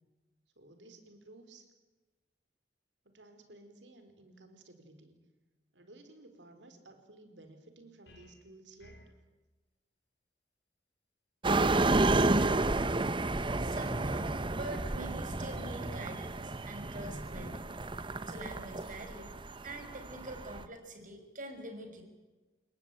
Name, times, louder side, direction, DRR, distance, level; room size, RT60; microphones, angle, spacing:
voice 1, 0.6-1.7 3.0-5.2 5.7-9.0, right 2 dB, 85° right, 7 dB, 4.6 m, -55 dB
sound 1, 8.1-8.4 8.8-9.2 11.6-11.9 12.4-12.7 13.2-13.5, left 1 dB, 65° left, 5.6 m, -56 dB
sound 2, 11.4-20.7, right 2 dB, 30° right, 0.9 m, -31 dB
voice 2, 13.6-17.7 18.3-19.3 19.6-22.0, right 2 dB, 50° right, 5 dB, 6.0 m, -45 dB
29.5 x 19.0 x 9.3 m, 1.2 s
head